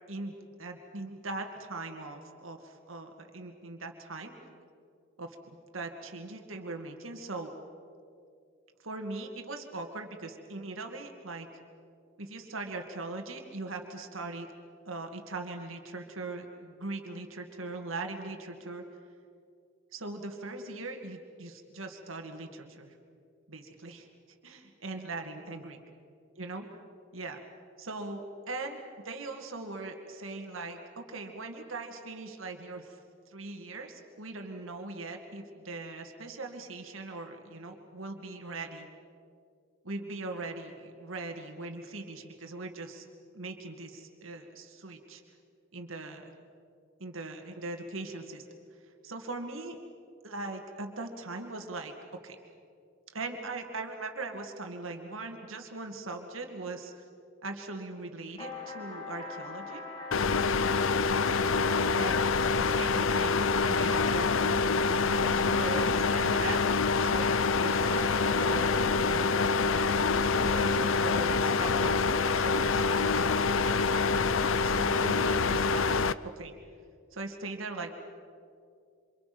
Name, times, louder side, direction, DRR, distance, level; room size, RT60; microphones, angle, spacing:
voice 1, 0.1-4.3 5.2-7.5 8.8-11.5 12.2-14.5 14.9-18.8 19.9-22.9 23.5-24.1 24.4-25.8 26.4-26.6 27.1-27.4 27.8-28.8 29.0-33.0 33.3-38.9 39.8-43.1 43.3-45.2 45.7-46.3 47.0-48.5 48.8-49.8 50.2-51.9 52.2-52.4 53.1-56.9 57.4-59.9 62.0-64.8 65.2-66.6 67.0-69.4 69.9-73.8 74.6-76.5 77.1-77.9, right 3 dB, 85° right, 4 dB, 2.2 m, -40 dB
sound 1, 58.4-75.2, left 4 dB, 30° left, 4.6 m, -41 dB
sound 2, 60.1-76.1, left 4 dB, 75° left, 0.6 m, -26 dB
27.5 x 26.5 x 6.1 m, 2.4 s
head